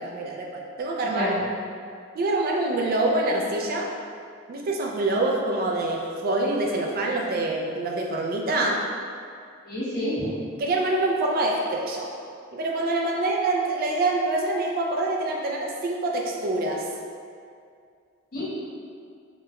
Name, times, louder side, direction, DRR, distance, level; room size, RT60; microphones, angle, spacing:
voice 1, 0.0-1.3 2.1-3.9 4.5-8.8 10.6-12.1 12.5-16.9, right 2 dB, 45° right, -1 dB, 0.3 m, -25 dB
voice 2, 1.0-1.4 9.6-10.4 18.3-18.4, equal, 50° left, -8 dB, 0.9 m, -28 dB
2.9 x 2.2 x 3.5 m, 2.3 s
head